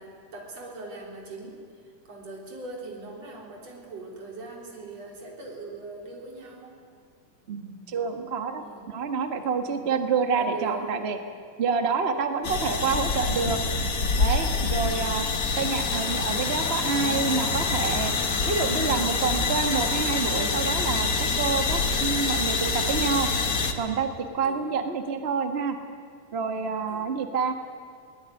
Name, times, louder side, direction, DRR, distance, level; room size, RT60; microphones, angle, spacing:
voice 1, 0.0-1.6 2.0-6.8 8.5-8.9 9.7-9.9 10.4-10.9 14.8-15.1 24.4-24.7 26.5-27.2, right 3 dB, 45° right, 0 dB, 4.8 m, -41 dB
voice 2, 7.5-11.2 11.6-13.6 14.2-15.3 15.6-18.1 18.5-23.3 23.8-25.8 26.3-27.5, right 5 dB, 85° right, 6 dB, 0.5 m, -28 dB
sound 1, 12.4-23.7, left 4 dB, 70° left, 0.8 m, -26 dB
22.5 x 18.0 x 9.7 m, 2.3 s
omnidirectional pair, 4.0 m